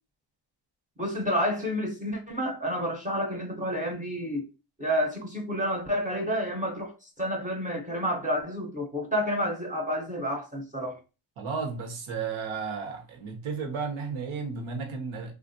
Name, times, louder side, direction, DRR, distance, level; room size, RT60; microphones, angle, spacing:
voice 1, 1.0-4.5 4.8-6.9 7.2-11.0, equal, 15° right, 0.6 m, -29 dB
voice 2, 11.4-15.3, right 5 dB, 80° right, 1.0 m, -33 dB
3.4 x 2.5 x 2.5 m
wide cardioid pair, 145°, 47 cm